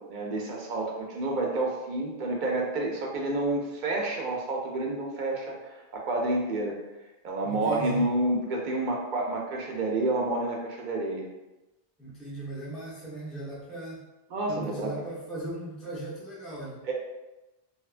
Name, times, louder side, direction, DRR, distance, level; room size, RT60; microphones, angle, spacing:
voice 1, 0.1-6.7 7.2-11.3 14.3-14.9 16.8-16.9, right 2 dB, 60° right, 0 dB, 0.6 m, -29 dB
voice 2, 7.4-8.1 12.0-14.1 14.5-16.8, right 2 dB, ahead, -6 dB, 0.4 m, -38 dB
2.7 x 2.3 x 2.4 m, 1.0 s
omnidirectional pair, 1.1 m